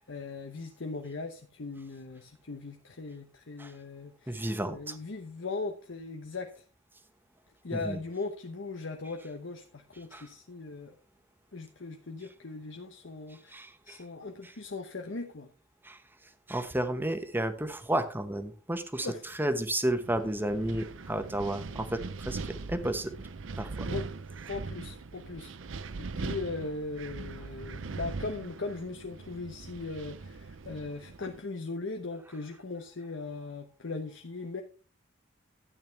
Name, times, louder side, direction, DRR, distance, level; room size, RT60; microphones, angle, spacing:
voice 1, 0.0-6.6 7.6-10.9 11.5-15.5 19.0-19.2 23.9-24.0 24.5-25.5 26.0-34.6, left 3 dB, 75° left, 4 dB, 1.0 m, -39 dB
voice 2, 4.3-5.0 7.7-8.0 10.1-10.3 13.3-14.0 14.4-14.5 15.8-16.0 16.5-23.2 23.6-23.9, right 1 dB, 10° right, 9 dB, 1.1 m, -32 dB
Wind, 19.9-31.4, right 4 dB, 90° right, 0.6 m, -41 dB
12.5 x 8.7 x 3.4 m, 0.36 s
head